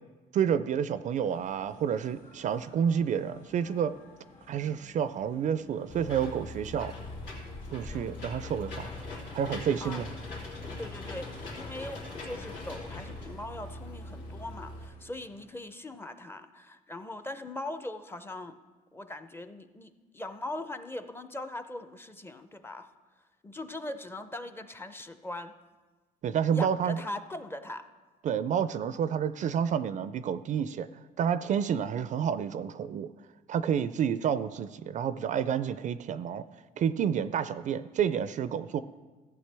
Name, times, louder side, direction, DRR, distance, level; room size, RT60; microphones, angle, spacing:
voice 1, 0.3-3.9 4.5-6.9 7.7-8.9 9.3-10.1 26.2-27.0 28.2-30.9 31.2-33.1 33.5-36.4 36.8-38.8, right 8 dB, 45° right, 13 dB, 0.4 m, -29 dB
sound 1, 1.1-15.5, left 2 dB, 55° left, 2.2 m, -57 dB
Engine / Mechanisms, 5.9-14.9, left 2 dB, 90° left, 3.0 m, -41 dB
voice 2, 9.8-10.3 10.8-18.6 18.9-22.9 23.4-25.5 26.5-27.8, left 1 dB, 15° left, 10 dB, 0.5 m, -40 dB
14.5 x 8.1 x 3.4 m, 1.3 s
cardioid pair, 110°, 17 cm